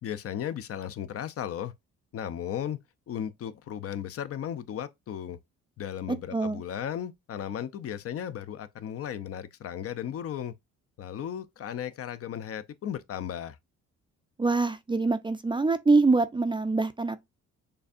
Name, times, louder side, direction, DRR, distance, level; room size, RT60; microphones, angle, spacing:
voice 1, 0.0-1.7 2.1-2.8 3.1-5.4 5.8-10.5 11.0-13.6, left 9 dB, 50° left, 0.5 m, -35 dB
voice 2, 6.1-6.6 14.4-17.2, right 3 dB, 15° right, 0.4 m, -24 dB
6.6 x 2.6 x 2.4 m
cardioid pair, 90°, 30 cm